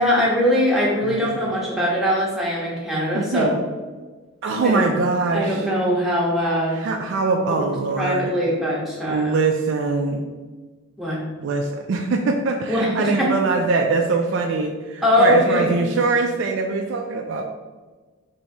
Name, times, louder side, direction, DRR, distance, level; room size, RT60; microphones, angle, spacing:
voice 1, 0.0-3.5 4.6-4.8 5.3-6.8 7.5-7.6 8.0-9.3 11.0-11.2 12.7-13.3 15.0-15.7, equal, ahead, -6 dB, 0.8 m, -21 dB
voice 2, 1.0-1.6 3.1-3.5 4.4-5.7 6.7-8.3 9.1-10.2 11.4-17.4, right 4 dB, 55° right, 2 dB, 0.3 m, -23 dB
3.0 x 2.7 x 4.4 m, 1.3 s
head